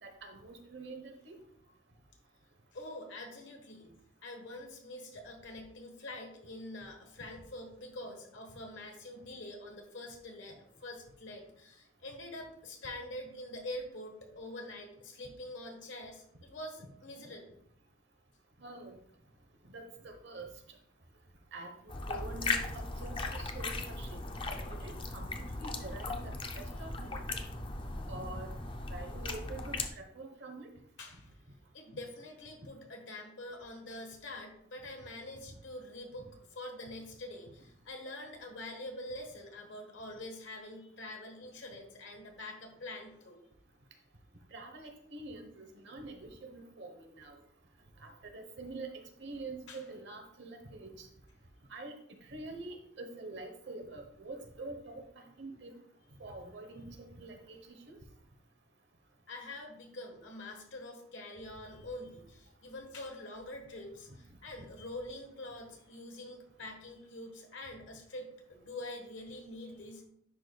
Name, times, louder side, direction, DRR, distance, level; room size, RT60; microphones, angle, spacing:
voice 1, 0.0-1.4 17.2-17.3 18.6-19.0 19.7-20.5 21.5-24.2 24.6-27.2 28.1-28.5 28.9-30.7 35.5-35.6 44.5-47.4 48.0-48.9 49.2-51.1 51.7-51.9 52.3-55.7 56.2-57.6 57.9-58.0 64.1-64.2, right 2 dB, 60° right, 4 dB, 1.0 m, -46 dB
voice 2, 2.7-3.9 4.2-17.4 31.0-31.4 31.7-43.4 49.7-49.8 59.3-70.0, left 1 dB, 70° left, 3 dB, 1.4 m, -45 dB
sound 1, 21.9-29.9, left 3 dB, 25° left, 0.5 m, -38 dB
10.0 x 5.0 x 2.3 m, 0.70 s
head